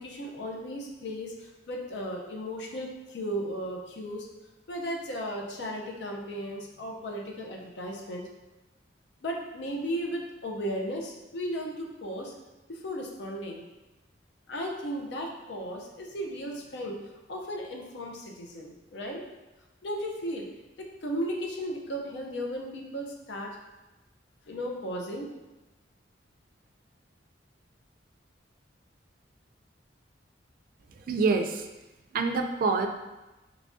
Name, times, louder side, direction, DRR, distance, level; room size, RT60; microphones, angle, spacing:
voice 1, 0.0-4.3 4.7-8.3 9.2-12.3 12.7-13.7 14.5-17.0 17.3-19.2 19.8-20.5 20.8-23.6 24.5-25.3, equal, 65° left, 0 dB, 0.5 m, -35 dB
voice 2, 30.9-31.7 32.1-32.9, right 4 dB, 50° right, 5 dB, 0.3 m, -26 dB
3.1 x 2.5 x 3.5 m, 1.1 s
head